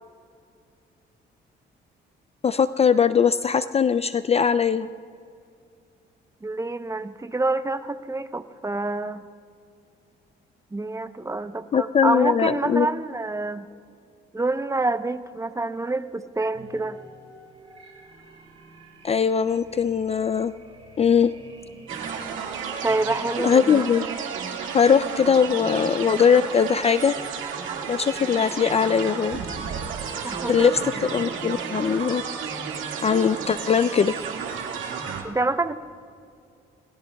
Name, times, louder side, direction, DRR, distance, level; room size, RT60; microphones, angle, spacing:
voice 1, 2.4-4.9 11.7-12.9 19.0-20.5 21.0-21.3 23.4-24.1 24.7-27.1 27.9-29.4 30.5-32.2 33.0-34.2, left 7 dB, 30° left, 13 dB, 0.4 m, -20 dB
voice 2, 6.4-9.2 10.7-13.6 14.3-17.0 22.8-23.8 30.2-30.8 35.2-35.7, right 2 dB, 15° right, 10 dB, 0.7 m, -27 dB
sound 1, 16.5-23.8, right 2 dB, 30° right, 4.7 m, -49 dB
sound 2, 21.9-35.2, right 6 dB, 80° right, 1.9 m, -32 dB
30.0 x 19.5 x 2.3 m, 2.4 s
cardioid pair, 90°, 20 cm